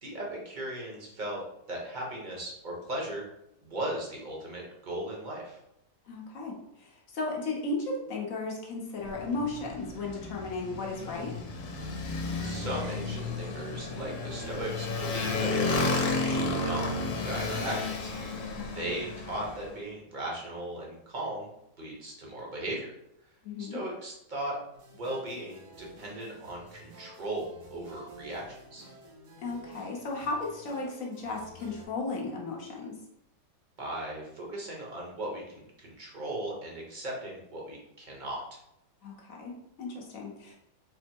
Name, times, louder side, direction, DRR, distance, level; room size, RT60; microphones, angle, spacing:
voice 1, 0.0-1.4 1.7-3.2 3.6-5.6 12.3-16.9 17.2-21.5 21.8-22.9 23.6-24.6 24.9-28.8 33.8-38.6, right 1 dB, 35° right, -3 dB, 0.8 m, -37 dB
voice 2, 6.1-11.3 18.5-18.9 23.4-23.8 29.4-32.9 39.0-40.6, left 3 dB, 55° left, -2 dB, 1.0 m, -35 dB
Motorcycle, 9.0-19.7, left 3 dB, 80° left, 1.3 m, -32 dB
sound 1, 24.7-31.8, right 1 dB, 70° right, 1.4 m, -52 dB
4.2 x 2.0 x 4.4 m, 0.81 s
omnidirectional pair, 1.9 m